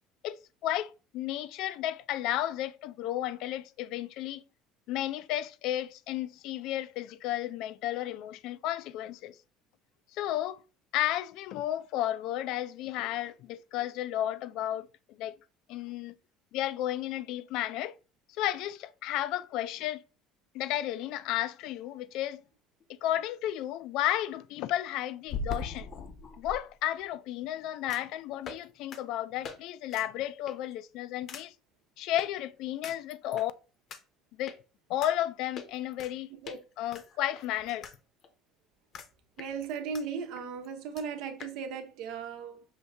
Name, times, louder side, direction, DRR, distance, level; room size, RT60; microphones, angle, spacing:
voice 1, 0.2-4.4 4.9-9.4 10.1-10.6 10.9-14.9 15.2-15.4 15.7-16.1 16.5-17.9 18.4-20.0 20.5-22.4 23.0-25.9 26.4-31.5 32.0-33.5 34.4-34.6 34.9-36.3 36.8-37.9, left 13 dB, 65° left, 0.3 m, -33 dB
sound 1, 22.8-22.9 25.3-26.6 27.9-28.1 28.4-28.6 28.9-29.0 29.4-29.6 29.9-30.1 30.5-30.7 31.3-31.4 32.2-32.3 32.8-33.5 33.9-34.0 34.5-34.6 35.0-35.1 35.6-36.1 36.4-36.6 36.9-38.0 38.2-38.3 38.9-39.1 39.4-40.0 40.4-40.5 40.6-40.7 41.0-41.1 41.4-41.5, left 4 dB, 45° left, 0.7 m, -40 dB
voice 2, 39.4-42.6, right 6 dB, 70° right, 0.8 m, -37 dB
5.5 x 2.7 x 3.3 m
supercardioid pair, 115°, 0 cm